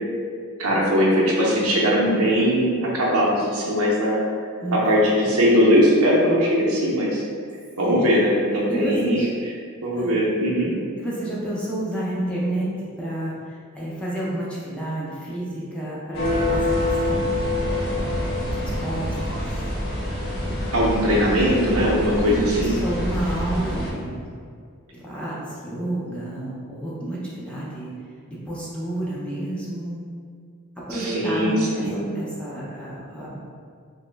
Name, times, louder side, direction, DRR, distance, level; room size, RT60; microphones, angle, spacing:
voice 1, 0.6-4.2 4.7-7.2 7.8-9.2 9.8-10.7 20.7-22.8 30.9-32.0, equal, 75° right, -3 dB, 0.6 m, -20 dB
voice 2, 7.8-8.1 8.7-9.3 10.0-10.1 10.7-12.7 13.0-17.3 17.8-18.1 18.6-19.5 22.3-24.2 24.9-27.9 28.3-30.0 30.9-33.4, right 1 dB, 5° left, -7 dB, 0.4 m, -30 dB
sound 1, 16.1-23.9, left 1 dB, 50° left, 0.7 m, -26 dB
2.9 x 2.0 x 3.2 m, 2.2 s
head